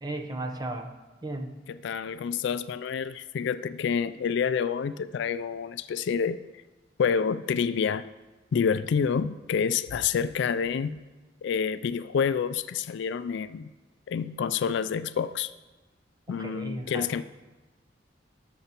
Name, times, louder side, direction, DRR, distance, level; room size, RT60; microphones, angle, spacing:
voice 1, 0.0-0.9 1.2-1.5 16.3-17.2, right 2 dB, 20° right, 4 dB, 0.8 m, -35 dB
voice 2, 1.8-6.4 7.0-8.0 8.5-11.0 11.4-13.7 14.1-15.5 16.3-17.2, left 6 dB, 65° left, 14 dB, 0.3 m, -28 dB
19.0 x 6.7 x 2.9 m, 1.2 s
head